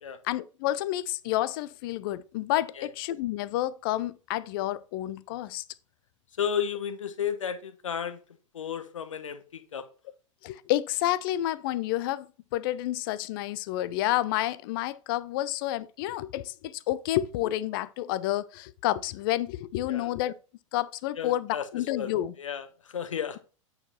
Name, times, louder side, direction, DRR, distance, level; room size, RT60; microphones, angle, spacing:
voice 1, 0.2-5.6 10.4-12.3 12.5-20.3 20.7-22.3, left 14 dB, 45° left, 0.5 m, -29 dB
voice 2, 6.4-8.2 8.5-9.8 19.9-20.1 21.2-23.4, left 8 dB, 70° left, 1.0 m, -33 dB
8.7 x 4.5 x 4.3 m
figure-of-eight pair, 100°, 17 cm